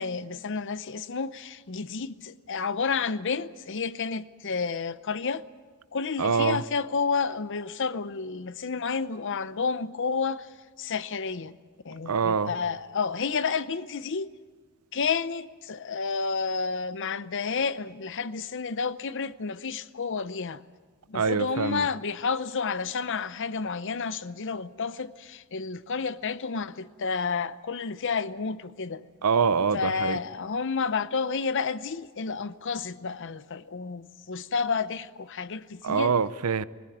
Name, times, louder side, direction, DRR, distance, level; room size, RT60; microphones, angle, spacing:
voice 1, 0.0-5.4 5.9-10.5 10.8-11.5 11.8-14.3 14.9-20.6 21.1-29.0 29.7-36.2, left 5 dB, 55° left, 0.7 m, -30 dB
voice 2, 6.2-6.6 12.1-12.5 21.1-21.9 29.2-30.2 35.8-36.6, right 5 dB, 90° right, 0.7 m, -25 dB
20.5 x 19.5 x 9.3 m
head